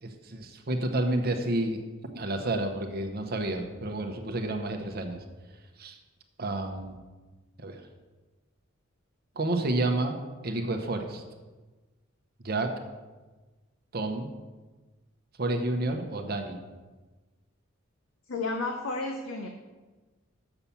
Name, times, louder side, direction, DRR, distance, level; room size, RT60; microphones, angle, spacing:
voice 1, 0.0-1.8 2.1-5.2 5.8-6.0 6.4-7.0 7.6-7.8 9.4-11.2 12.4-12.8 13.9-14.3 15.4-16.6, right 2 dB, 50° right, 5 dB, 0.8 m, -30 dB
voice 2, 18.3-19.5, left 3 dB, 80° left, 3 dB, 0.7 m, -32 dB
7.0 x 5.7 x 7.0 m, 1.2 s
head